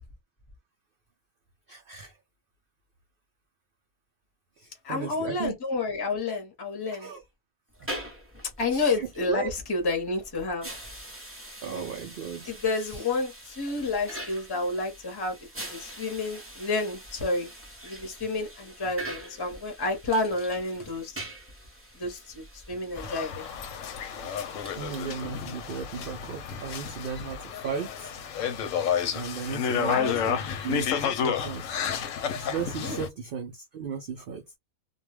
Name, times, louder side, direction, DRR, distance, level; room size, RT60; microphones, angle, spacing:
voice 1, 1.7-2.1 4.6-5.5 6.9-7.2 8.7-9.5 11.6-12.5 12.8-13.0 24.8-28.1 29.1-30.9 31.2-31.8 32.4-34.4, right 6 dB, 65° right, 0.5 m, -35 dB
voice 2, 4.8-7.1 8.6-10.7 12.5-17.5 17.8-21.2 21.9-23.5 29.9-30.2 32.8-33.0, left 3 dB, 20° left, 0.7 m, -30 dB
sound 1, 7.7-27.3, right 1 dB, 15° right, 0.4 m, -44 dB
sound 2, 23.0-33.1, left 8 dB, 70° left, 0.9 m, -31 dB
2.4 x 2.2 x 3.1 m
omnidirectional pair, 1.5 m